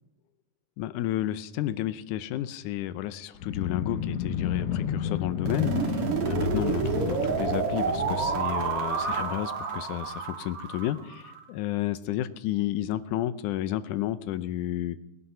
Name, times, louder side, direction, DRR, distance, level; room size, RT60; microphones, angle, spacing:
voice 1, 0.8-15.0, left 13 dB, 80° left, 14 dB, 2.1 m, -32 dB
sound 1, 3.3-9.3, left 7 dB, 65° left, 2.0 m, -32 dB
sound 2, 5.4-11.4, right 5 dB, 55° right, 2.2 m, -29 dB
19.0 x 9.6 x 5.7 m, 0.88 s
omnidirectional pair, 3.7 m